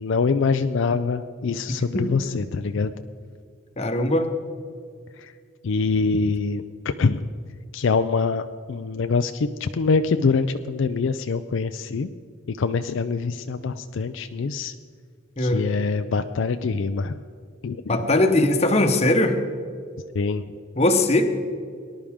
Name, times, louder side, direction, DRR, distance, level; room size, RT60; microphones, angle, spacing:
voice 1, 0.0-2.9 5.2-5.3 5.6-7.3 7.7-12.1 12.5-14.7 15.4-17.2 17.6-17.8 20.1-20.4, left 4 dB, 65° left, 9 dB, 0.4 m, -24 dB
voice 2, 3.8-4.3 15.4-15.6 17.9-19.4 20.7-21.3, left 1 dB, 30° left, 6 dB, 1.0 m, -20 dB
19.0 x 11.5 x 3.6 m, 2.2 s
head